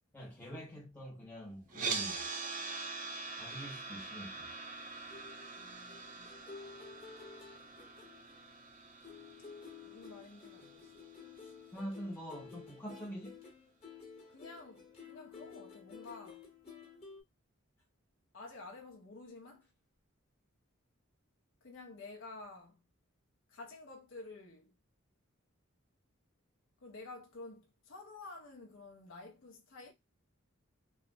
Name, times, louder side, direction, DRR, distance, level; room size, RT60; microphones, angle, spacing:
voice 1, 0.1-2.2 3.4-4.5 11.7-13.4, equal, 10° left, 0.6 m, -45 dB
sound 1, 1.7-11.8, right 4 dB, 40° right, 0.4 m, -43 dB
sound 2, 5.1-8.7 9.0-17.2, left 5 dB, 25° left, 1.0 m, -53 dB
voice 2, 5.6-6.3 9.8-10.9 14.3-16.4 18.3-19.6 21.6-22.8 23.5-24.7 26.8-29.9, left 3 dB, 60° left, 0.5 m, -51 dB
3.1 x 2.1 x 2.5 m
head